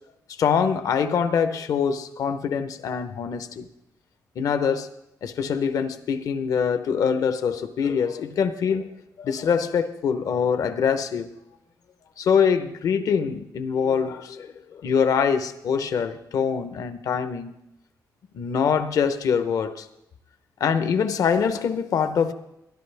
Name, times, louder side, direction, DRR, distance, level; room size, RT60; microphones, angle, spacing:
voice 1, 0.4-3.7 4.4-4.9 5.2-8.9 9.2-11.3 12.2-17.6 18.3-19.9 20.6-22.3, left 6 dB, 60° left, 0.8 m, -24 dB
21.0 x 11.5 x 3.4 m
wide cardioid pair, 170°, 7 cm